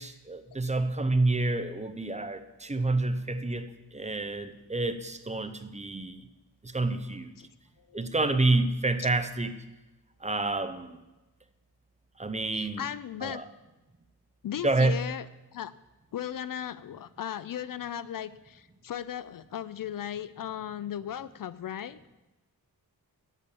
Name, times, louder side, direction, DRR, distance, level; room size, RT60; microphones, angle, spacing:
voice 1, 0.0-6.2 6.6-7.3 7.9-9.5 10.2-11.0 12.2-12.8 13.2-13.4 14.6-15.0, right 2 dB, 20° right, 9 dB, 0.8 m, -28 dB
voice 2, 12.5-13.4 14.4-15.7 16.1-22.1, left 10 dB, 60° left, 16 dB, 0.5 m, -37 dB
8.3 x 8.3 x 7.0 m, 1.0 s
wide cardioid pair, 95°, 39 cm